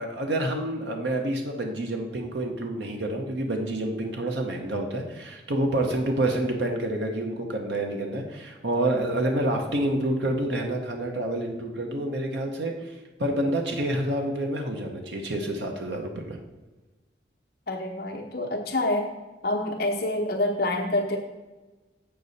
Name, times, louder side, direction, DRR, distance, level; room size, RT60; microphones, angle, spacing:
voice 1, 0.0-16.4, right 1 dB, 70° right, 2 dB, 0.9 m, -28 dB
voice 2, 17.7-19.1 19.4-21.2, left 1 dB, 55° left, 1 dB, 0.9 m, -27 dB
7.7 x 6.8 x 4.1 m, 1.2 s
head